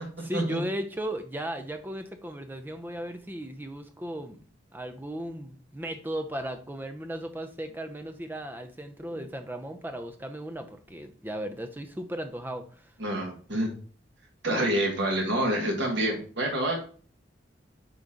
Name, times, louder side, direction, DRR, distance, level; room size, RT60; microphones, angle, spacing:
voice 1, 0.0-4.4 4.7-12.9, right 1 dB, 10° right, 7 dB, 0.6 m, -36 dB
voice 2, 13.0-13.7 14.4-16.8, right 1 dB, 65° right, -1 dB, 1.6 m, -27 dB
9.0 x 3.1 x 3.8 m, 0.42 s
head